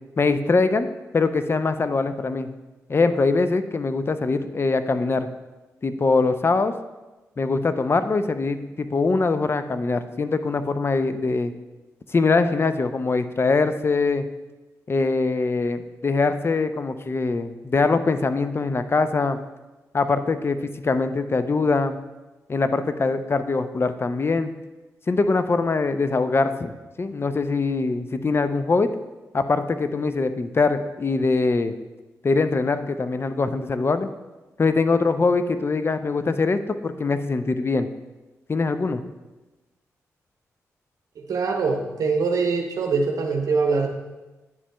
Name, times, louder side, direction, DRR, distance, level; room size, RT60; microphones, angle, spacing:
voice 1, 0.2-0.9 1.1-2.5 2.9-5.3 5.8-6.7 7.4-11.5 12.1-14.2 14.9-19.4 19.9-22.0 22.5-24.5 25.1-26.7 27.0-28.9 29.3-31.8 32.2-34.1 34.6-37.9 38.5-39.0, left 3 dB, 40° left, 10 dB, 0.5 m, -22 dB
voice 2, 41.3-43.9, right 4 dB, 70° right, 2 dB, 0.8 m, -23 dB
9.6 x 7.4 x 2.2 m, 1.1 s
supercardioid pair, 45°, 6 cm